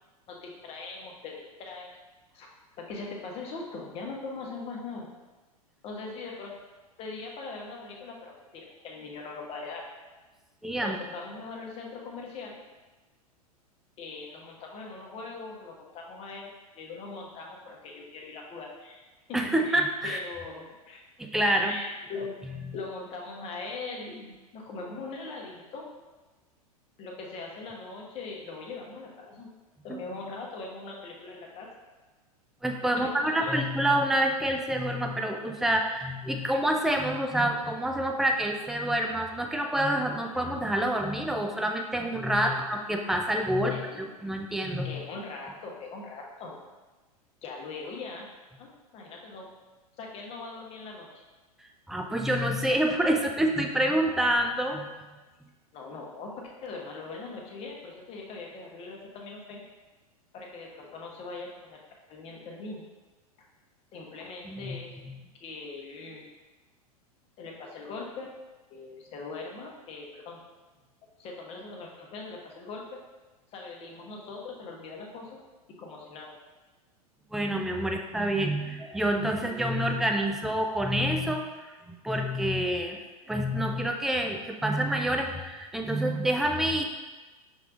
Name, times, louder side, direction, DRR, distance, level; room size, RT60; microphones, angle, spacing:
voice 1, 0.3-1.9 2.3-2.5 2.8-5.1 5.8-6.5 7.0-9.8 10.8-12.6 14.0-19.0 19.3-19.4 19.6-21.0 21.6-22.3 22.7-25.9 27.0-29.5 29.8-31.7 32.9-33.6 42.4-42.6 43.6-44.1 44.8-46.6 47.4-48.3 48.6-49.5 50.0-51.2 55.7-59.6 60.3-61.8 62.1-62.8 63.9-64.9 65.4-66.3 67.4-68.3 68.7-70.4 71.2-73.0 73.5-75.4 75.8-76.3 77.8-78.0 80.2-80.3, left 3 dB, 30° left, -1 dB, 0.9 m, -41 dB
voice 2, 10.6-11.0 19.3-20.2 21.2-21.8 29.9-30.0 32.6-45.0 51.9-54.9 64.5-64.8 77.3-81.4 81.9-83.0 83.3-86.8, right 1 dB, ahead, 3 dB, 0.3 m, -27 dB
6.2 x 3.2 x 2.5 m, 1.2 s
figure-of-eight pair, 100°, 20 cm